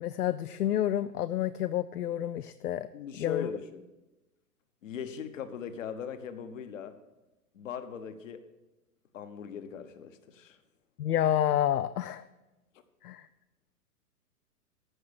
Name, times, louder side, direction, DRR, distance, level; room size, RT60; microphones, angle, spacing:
voice 1, 0.0-2.9 3.2-3.5 11.0-12.2 13.0-13.3, left 11 dB, 70° left, 14 dB, 0.6 m, -29 dB
voice 2, 2.9-3.8 4.8-6.9 7.5-8.4 9.1-10.6, left 7 dB, 50° left, 10 dB, 1.2 m, -39 dB
14.5 x 5.8 x 6.6 m, 1.1 s
figure-of-eight pair, 115°, 48 cm